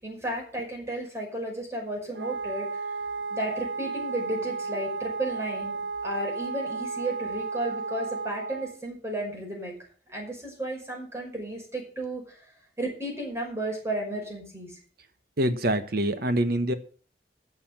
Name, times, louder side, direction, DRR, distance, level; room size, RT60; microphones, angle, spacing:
voice 1, 0.0-2.8 3.3-9.8 10.1-12.2 12.8-14.8, right 1 dB, 15° right, 0 dB, 5.6 m, -33 dB
Wind instrument woodwind instrument, 2.1-8.8, right 4 dB, 90° right, 0.8 m, -33 dB
voice 2, 15.4-16.7, right 1 dB, 60° right, 10 dB, 1.3 m, -25 dB
12.0 x 7.0 x 7.4 m, 0.41 s
head